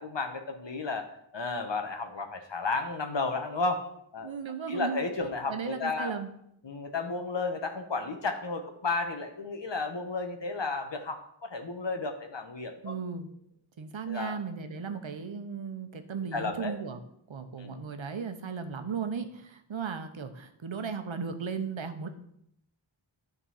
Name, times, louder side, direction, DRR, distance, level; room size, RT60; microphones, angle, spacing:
voice 1, 0.0-3.8 4.1-4.3 4.7-6.2 6.6-12.9 14.1-14.4 16.2-16.7 17.6-17.8, left 3 dB, 65° left, 5 dB, 1.1 m, -33 dB
voice 2, 4.2-5.0 5.5-6.3 12.8-13.3 13.8-17.0 17.3-22.1, right 6 dB, 80° right, 8 dB, 0.9 m, -36 dB
10.0 x 4.0 x 5.6 m, 0.73 s
wide cardioid pair, 45°, 46 cm